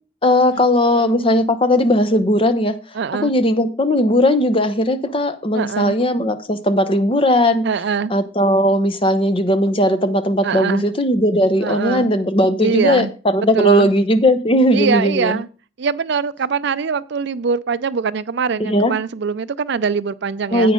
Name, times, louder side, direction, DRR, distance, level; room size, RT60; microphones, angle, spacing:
voice 1, 0.2-2.7 3.2-7.6 8.1-15.4 18.6-18.9 20.5-20.7, left 1 dB, 25° left, 0.8 m, -17 dB
voice 2, 2.9-3.3 5.5-5.9 7.6-8.1 10.4-10.9 11.6-12.1 12.6-13.1 13.5-13.9 14.7-15.5 15.8-20.7, right 5 dB, 55° right, 0.4 m, -22 dB
10.0 x 8.6 x 3.8 m
head